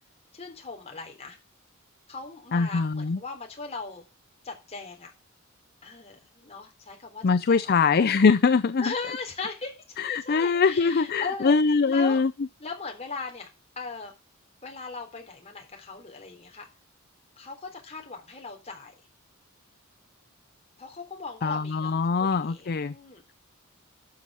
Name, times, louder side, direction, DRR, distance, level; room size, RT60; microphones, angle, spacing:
voice 1, 0.3-1.4 2.1-4.1 4.4-5.1 5.8-7.9 8.8-11.6 11.9-12.2 12.6-13.5 13.8-14.1 14.6-16.7 17.4-18.9 20.8-23.2, left 4 dB, 30° left, 3.6 m, -38 dB
voice 2, 2.5-3.2 7.2-8.9 10.0-12.3 21.4-22.9, left 5 dB, 45° left, 0.5 m, -22 dB
12.0 x 6.4 x 5.6 m
head